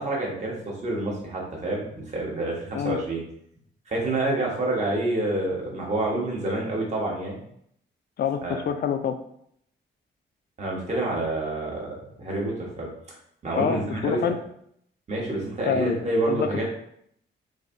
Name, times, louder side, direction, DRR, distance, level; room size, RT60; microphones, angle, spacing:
voice 1, 0.0-3.2 3.9-7.4 8.4-8.6 10.6-12.9 13.4-14.3 15.1-16.6, right 2 dB, 35° right, -3 dB, 1.2 m, -28 dB
voice 2, 8.2-9.2 13.6-14.4 15.7-16.6, left 7 dB, 55° left, 8 dB, 0.4 m, -27 dB
6.1 x 2.7 x 2.6 m, 0.71 s
wide cardioid pair, 165°, 20 cm